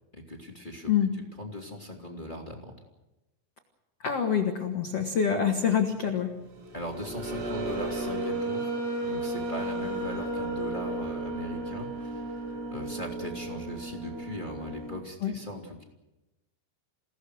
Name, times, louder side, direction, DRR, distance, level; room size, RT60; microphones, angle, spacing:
voice 1, 0.1-0.9 1.4-2.7 6.7-8.7 9.0-15.8, left 1 dB, 15° left, 1 dB, 1.8 m, -39 dB
voice 2, 4.0-6.3 15.2-15.3, left 7 dB, 80° left, 3 dB, 1.3 m, -26 dB
sound 1, 6.6-15.0, right 2 dB, 80° right, 7.1 m, -34 dB
28.5 x 18.0 x 6.5 m, 0.98 s
omnidirectional pair, 5.9 m